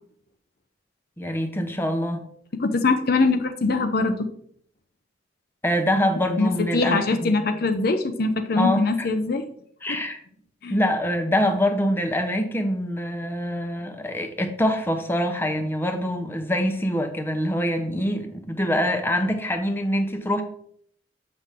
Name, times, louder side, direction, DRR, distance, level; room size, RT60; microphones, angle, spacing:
voice 1, 1.2-2.2 5.6-7.5 8.6-8.8 9.8-10.2 10.7-20.4, equal, 15° left, 4 dB, 0.8 m, -24 dB
voice 2, 2.5-4.3 6.4-9.4 9.9-10.0 10.6-10.8, left 3 dB, 60° left, 7 dB, 0.7 m, -23 dB
7.8 x 5.8 x 3.6 m, 0.64 s
head